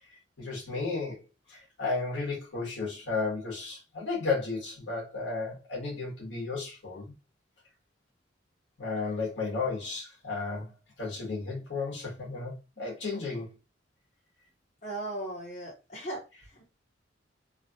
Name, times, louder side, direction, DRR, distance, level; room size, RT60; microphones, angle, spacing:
voice 1, 0.4-1.2 1.5-7.1 8.8-10.7 11.0-13.5, left 4 dB, 85° left, 1.4 m, -33 dB
voice 2, 14.8-16.2 16.5-16.7, right 1 dB, 40° left, 1.1 m, -37 dB
3.0 x 2.4 x 2.7 m
head